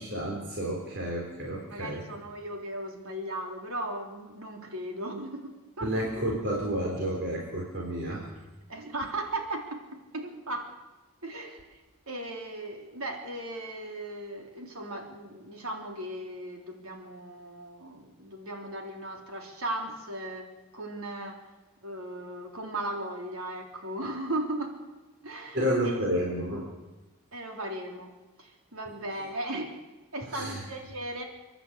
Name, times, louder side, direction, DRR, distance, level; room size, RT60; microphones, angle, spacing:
voice 1, 0.0-2.0 5.8-8.3 25.5-26.7 30.3-30.6, equal, 55° right, -2 dB, 4.1 m, -30 dB
voice 2, 1.7-5.9 6.2-6.3 8.7-10.7 11.2-11.6 12.1-21.4 21.8-24.8 25.2-25.6 25.8-26.0 27.3-28.1 28.4-29.8 30.1-31.2, right 1 dB, 75° right, 2 dB, 3.6 m, -37 dB
30.0 x 11.0 x 8.3 m, 1.1 s
head